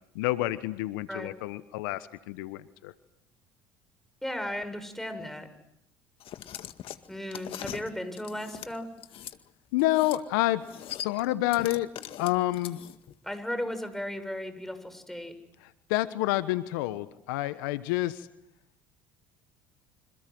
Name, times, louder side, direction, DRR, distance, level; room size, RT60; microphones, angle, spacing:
voice 1, 0.1-2.9 9.7-10.6 11.0-11.9 12.2-12.8 15.9-18.3, left 16 dB, 75° left, 13 dB, 1.2 m, -28 dB
voice 2, 4.2-5.5 7.1-8.9 13.2-15.3, left 1 dB, 5° left, 9 dB, 7.2 m, -35 dB
sound 1, 6.2-9.4 9.8-10.2 10.5-13.1, left 11 dB, 55° left, 2.0 m, -41 dB
28.0 x 27.0 x 7.9 m, 0.78 s
hypercardioid pair, 70°, 11 cm